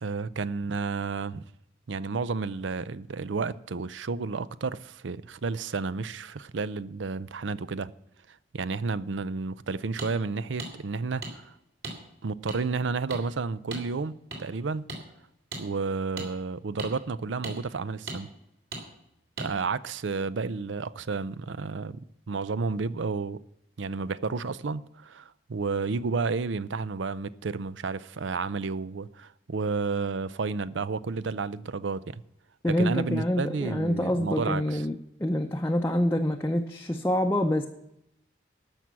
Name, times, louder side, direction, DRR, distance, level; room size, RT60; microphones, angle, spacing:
voice 1, 0.0-1.4 1.9-7.9 8.5-11.4 12.2-14.9 15.6-18.3 19.4-23.4 23.8-32.2 32.7-34.8, right 4 dB, 90° right, 0.5 m, -31 dB
sound 1, 10.0-10.1 10.6-10.7 11.2-11.3 11.8-12.0 12.5-12.6 13.1-13.2 13.7-13.8 14.3-14.4 14.9-15.0 15.5-15.6 16.2-16.3 16.8-16.9 17.4-17.6 18.1-18.2 18.7-18.8 19.4-19.5, right 2 dB, 60° right, 3.3 m, -36 dB
voice 2, 32.6-37.7, left 1 dB, 15° left, 0.6 m, -26 dB
13.5 x 6.1 x 8.2 m
head